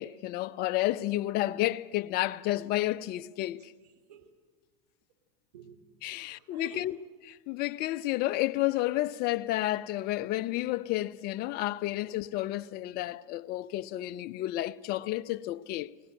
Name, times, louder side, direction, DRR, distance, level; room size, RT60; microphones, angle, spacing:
voice 1, 0.0-3.7 6.0-7.0 7.2-15.9, left 16 dB, 50° left, 0.8 m, -31 dB
voice 2, 3.5-4.3 5.5-6.9 10.2-10.3 11.7-11.9, right 8 dB, 80° right, 2.7 m, -53 dB
21.5 x 18.5 x 9.1 m
hypercardioid pair, 90°, 20 cm